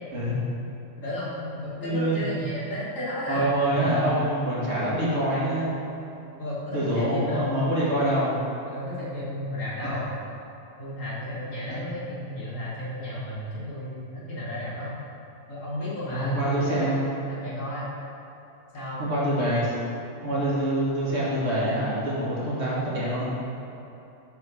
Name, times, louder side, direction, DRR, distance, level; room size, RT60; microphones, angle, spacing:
voice 1, 1.0-3.4 3.7-3.8 6.4-7.6 8.7-10.1 10.8-14.9 15.5-17.9 18.7-19.1, left 1 dB, 90° left, -8 dB, 2.4 m, -33 dB
voice 2, 1.8-2.2 3.3-5.7 6.7-8.3 16.1-17.1 19.0-19.7 20.2-23.2, right 1 dB, 60° right, -7 dB, 2.1 m, -25 dB
7.0 x 4.4 x 6.3 m, 2.9 s
omnidirectional pair, 1.3 m